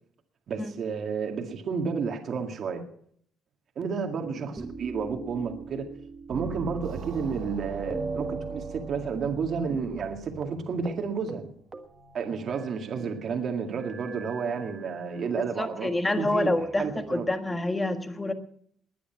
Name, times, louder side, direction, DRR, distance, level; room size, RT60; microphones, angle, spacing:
voice 1, 0.5-2.8 3.8-5.9 6.3-11.5 12.1-15.9 16.2-17.3, right 5 dB, 45° right, 4 dB, 2.1 m, -31 dB
sound 1, 4.6-7.5 7.9-9.7 10.0-10.1 10.4-10.6 10.9-11.0 11.3-13.0 13.8-15.3 16.1-17.0, right 3 dB, 20° right, 1.5 m, -41 dB
sound 2, 6.3-11.5, right 8 dB, 65° right, 3.0 m, -40 dB
voice 2, 15.4-18.3, left 2 dB, 15° left, 7 dB, 1.7 m, -28 dB
20.0 x 10.0 x 5.8 m, 0.63 s
cardioid pair, 140°, 0 cm